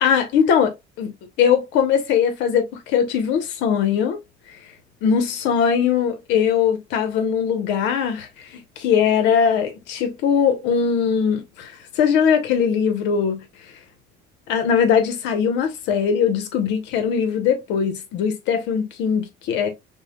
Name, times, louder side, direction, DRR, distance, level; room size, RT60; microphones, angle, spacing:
voice 1, 0.0-1.1 1.4-4.2 5.0-13.4 14.5-19.7, left 7 dB, 75° left, 1.0 m, -20 dB
5.5 x 2.3 x 2.2 m
cardioid pair, 155°, 19 cm